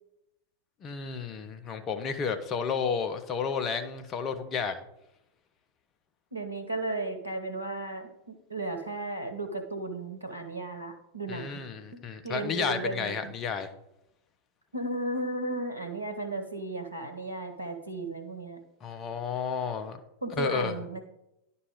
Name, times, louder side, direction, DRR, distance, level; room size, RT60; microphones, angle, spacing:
voice 1, 0.8-4.8 11.3-13.7 18.8-20.0 20.4-20.7, left 6 dB, 30° left, 7 dB, 0.7 m, -32 dB
voice 2, 6.3-11.6 11.9-12.0 12.2-13.3 14.7-18.6 20.2-21.0, right 2 dB, 85° right, 5 dB, 1.1 m, -35 dB
11.0 x 4.2 x 3.6 m, 0.86 s
figure-of-eight pair, 90°, 0 cm